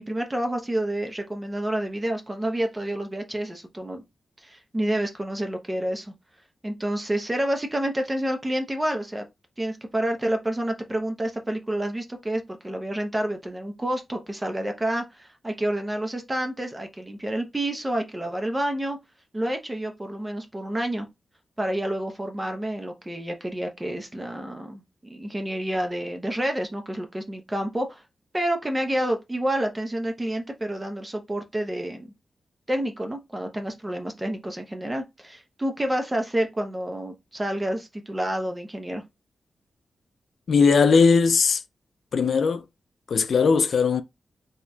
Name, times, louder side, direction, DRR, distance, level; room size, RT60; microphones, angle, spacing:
voice 1, 0.0-4.0 4.4-6.1 6.6-9.2 9.6-19.0 19.3-21.1 21.6-28.0 28.3-32.1 32.7-39.0, right 1 dB, 15° right, 0.8 m, -29 dB
voice 2, 40.5-41.6 42.1-42.6 43.1-44.0, left 5 dB, 70° left, 0.3 m, -19 dB
3.9 x 2.9 x 2.2 m
wide cardioid pair, 130°, 0 cm